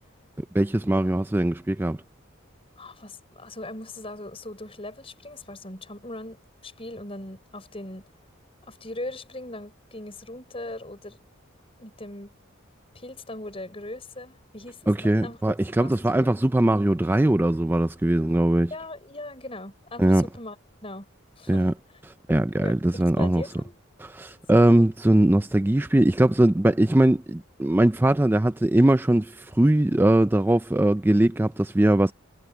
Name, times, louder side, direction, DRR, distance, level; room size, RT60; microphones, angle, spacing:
voice 1, 0.5-2.0 14.9-18.7 20.0-20.2 21.5-21.7 22.3-23.4 24.0-32.1, right 1 dB, 10° right, 0.4 m, -21 dB
voice 2, 2.8-8.1 8.6-11.2 11.8-12.3 12.9-15.4 15.8-15.9 16.2-16.3 18.7-20.6 20.8-21.1 21.4-21.7 22.6-23.8 24.5-24.9, left 1 dB, 25° left, 5.7 m, -39 dB
head